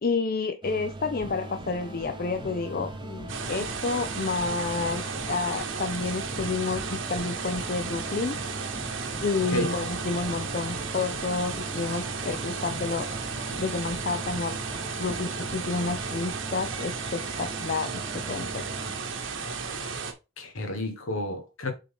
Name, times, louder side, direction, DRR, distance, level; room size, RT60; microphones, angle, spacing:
voice 1, 0.0-8.4 9.2-14.6 15.0-18.6, left 4 dB, 40° left, 0.4 m, -30 dB
sound 1, 0.6-19.5, right 2 dB, 20° right, 0.4 m, -41 dB
sound 2, 1.1-16.3, left 1 dB, 25° left, 1.3 m, -45 dB
sound 3, 3.3-20.1, right 5 dB, 55° right, 1.0 m, -34 dB
voice 2, 20.4-21.7, left 1 dB, 65° left, 1.4 m, -31 dB
7.3 x 3.9 x 3.5 m
head